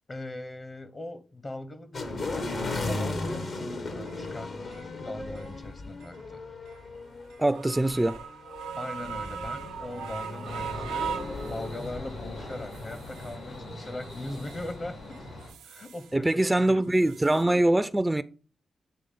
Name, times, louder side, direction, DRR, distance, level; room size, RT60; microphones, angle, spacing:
voice 1, 0.1-2.5 2.8-6.4 8.8-11.1 11.5-15.2 15.6-17.1, left 2 dB, 40° left, 1.0 m, -40 dB
sound 1, 1.9-13.0, left 2 dB, 60° left, 1.1 m, -37 dB
sound 2, 3.4-3.5 4.1-4.2 4.7-4.9 5.4-5.5 6.0-6.2 6.7-6.8 7.3-12.1 12.5-13.4 13.8-14.7 15.1-16.2 16.4-17.4, right 8 dB, 85° right, 0.5 m, -40 dB
voice 2, 7.4-8.2 16.1-18.2, right 1 dB, 15° right, 0.4 m, -23 dB
sound 3, 10.4-15.5, left 1 dB, 80° left, 3.2 m, -42 dB
9.1 x 3.3 x 3.7 m
supercardioid pair, 40°, 0 cm